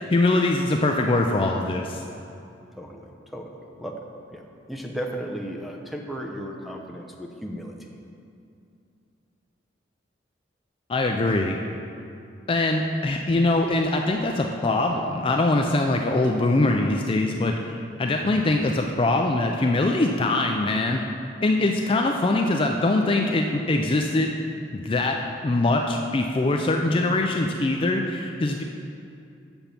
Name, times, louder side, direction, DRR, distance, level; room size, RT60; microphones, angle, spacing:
voice 1, 0.1-2.0 10.9-11.6 12.5-21.0 21.4-24.3 24.7-25.2 25.4-28.6, left 2 dB, 30° left, 2 dB, 0.4 m, -23 dB
voice 2, 2.8-4.0 4.3-7.8 18.2-18.5, equal, ahead, 1 dB, 0.7 m, -35 dB
7.0 x 6.8 x 5.8 m, 2.6 s
head